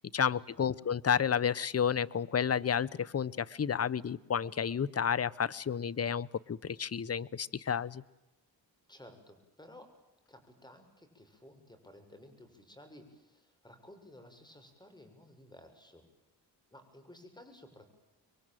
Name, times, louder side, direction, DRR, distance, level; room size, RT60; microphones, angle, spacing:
voice 1, 0.1-8.0, left 7 dB, 35° left, 20 dB, 0.9 m, -31 dB
voice 2, 8.9-9.9 10.3-16.0 16.7-17.9, left 1 dB, 10° left, 7 dB, 7.0 m, -55 dB
27.0 x 23.0 x 9.1 m, 0.97 s
cardioid pair, 85°, 42 cm